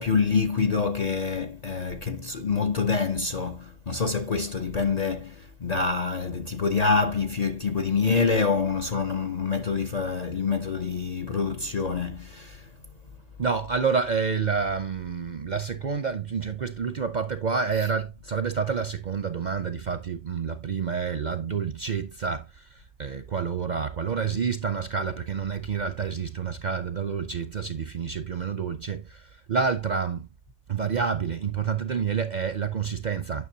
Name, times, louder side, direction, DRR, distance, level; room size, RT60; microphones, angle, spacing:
voice 1, 0.0-12.6, left 5 dB, 45° left, 0.5 m, -26 dB
voice 2, 13.4-30.3 30.7-33.5, right 6 dB, 50° right, 0.6 m, -28 dB
9.6 x 5.9 x 2.7 m
omnidirectional pair, 1.3 m